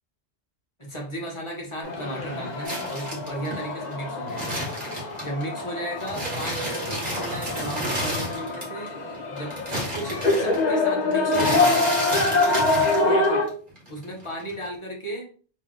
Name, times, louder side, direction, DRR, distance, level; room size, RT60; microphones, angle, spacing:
voice 1, 0.8-4.7 4.9-8.9 9.3-11.8 12.5-13.3 13.9-15.3, right 1 dB, 30° left, -1 dB, 1.1 m, -34 dB
Blue Mosque, 1.8-13.5, left 2 dB, 45° left, 0.8 m, -26 dB
sound 1, 2.6-5.6 6.0-8.9 9.1-13.5 13.8-14.7, equal, 45° right, 1.8 m, -31 dB
3.1 x 3.0 x 3.8 m, 0.41 s
omnidirectional pair, 1.1 m